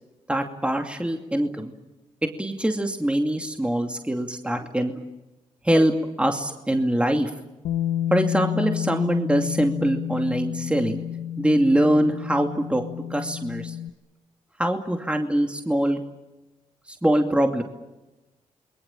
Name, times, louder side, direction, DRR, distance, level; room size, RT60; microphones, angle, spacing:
voice 1, 0.3-1.7 2.2-4.9 5.6-7.3 8.1-11.0 11.4-12.8 13.1-13.8 14.6-16.0 16.9-17.6, right 1 dB, 10° right, 4 dB, 2.5 m, -23 dB
Bass guitar, 7.6-13.9, left 10 dB, 85° left, 0.9 m, -30 dB
28.5 x 22.0 x 7.3 m, 1.0 s
cardioid pair, 60°, 13 cm